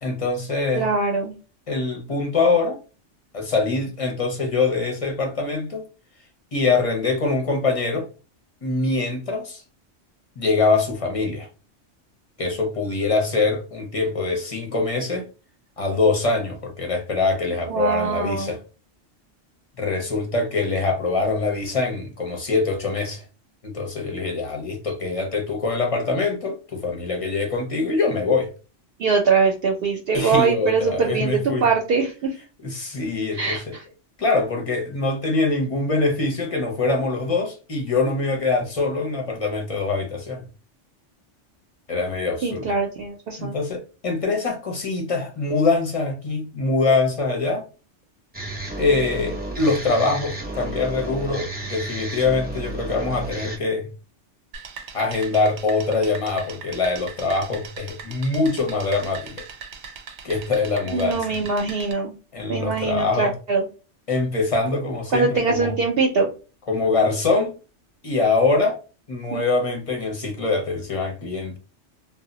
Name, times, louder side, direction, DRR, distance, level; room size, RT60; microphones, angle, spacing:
voice 1, 0.0-0.9 1.7-2.8 3.3-5.9 6.5-8.1 8.6-9.6 10.4-11.5 12.4-15.3 15.8-18.6 19.8-23.2 23.6-28.5 30.1-31.6 32.6-33.7 34.2-40.5 41.9-42.7 43.4-47.7 48.8-53.9 54.9-59.3 60.2-61.3 62.3-63.3 64.1-65.7 66.7-67.5 68.0-68.8 69.1-71.6, left 3 dB, 40° left, 0.5 m, -23 dB
voice 2, 0.7-1.3 17.7-18.5 29.0-32.3 33.3-33.8 42.4-43.6 60.9-62.1 62.5-63.6 65.1-66.3 69.3-69.4, right 4 dB, 60° right, 0.7 m, -22 dB
sound 1, 48.3-53.6, right 2 dB, 10° right, 0.5 m, -32 dB
sound 2, 54.5-61.9, right 6 dB, 85° right, 0.9 m, -40 dB
2.1 x 2.1 x 3.7 m
omnidirectional pair, 1.2 m